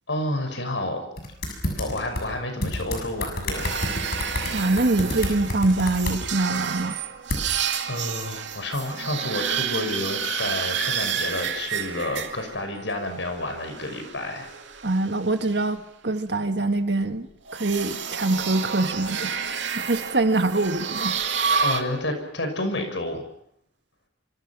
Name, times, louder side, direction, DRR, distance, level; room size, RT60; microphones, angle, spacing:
voice 1, 0.1-1.0 1.8-3.8 7.9-14.5 21.6-23.2, left 1 dB, 85° left, 6 dB, 6.2 m, -30 dB
sound 1, 1.2-2.2 2.6-6.2 7.3-7.4, left 1 dB, 60° left, 6.9 m, -28 dB
sound 2, 3.5-12.6 13.1-15.3 17.5-21.8, right 6 dB, 85° right, 2.4 m, -30 dB
voice 2, 4.5-7.0 14.8-17.3 17.5-19.5 19.8-21.2, right 2 dB, 65° right, 8 dB, 1.7 m, -24 dB
26.0 x 25.5 x 6.1 m, 0.71 s
head